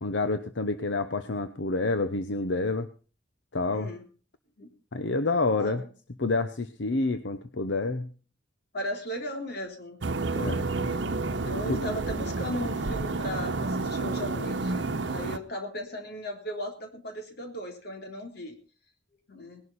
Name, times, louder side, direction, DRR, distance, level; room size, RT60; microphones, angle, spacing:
voice 1, 0.0-2.9 3.5-3.9 4.9-5.8 6.2-8.1 10.4-10.6 11.7-11.8, left 3 dB, 85° left, 10 dB, 0.9 m, -28 dB
voice 2, 3.7-4.0 4.6-4.7 5.5-5.9 8.7-10.0 10.3-10.7 11.4-18.5 19.3-19.6, equal, 60° left, 3 dB, 3.4 m, -37 dB
sound 1, 10.0-15.4, right 3 dB, 75° right, 0.9 m, -30 dB
19.0 x 11.0 x 4.2 m, 0.37 s
head